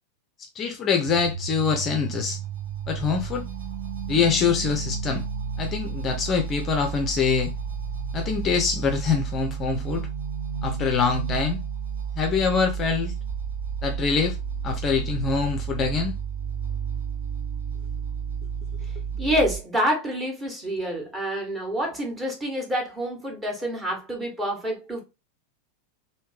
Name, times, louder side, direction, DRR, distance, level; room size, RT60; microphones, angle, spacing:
voice 1, 0.6-2.4 2.9-3.4 4.1-5.2 5.6-7.5 8.1-10.1 10.6-11.6 12.2-13.1 13.8-14.4 14.6-16.2, left 5 dB, 30° left, 0.5 m, -24 dB
sound 1, 1.0-19.6, right 6 dB, 60° right, 0.8 m, -32 dB
voice 2, 19.2-25.0, equal, 15° right, 1.2 m, -27 dB
3.1 x 2.7 x 3.3 m
figure-of-eight pair, 90°, 0 cm